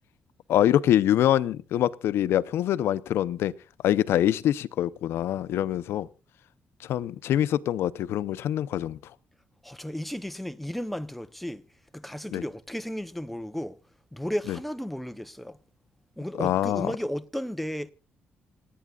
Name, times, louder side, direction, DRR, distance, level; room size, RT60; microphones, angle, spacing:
voice 1, 0.5-3.5 3.8-6.1 6.8-9.0 12.3-12.4 14.5-14.6 16.4-16.9, left 11 dB, 80° left, 0.6 m, -24 dB
voice 2, 9.6-11.6 11.9-13.8 14.1-15.6 16.2-17.9, equal, ahead, 0.7 m, -34 dB
28.0 x 9.4 x 2.4 m
cardioid pair, 120°, 4 cm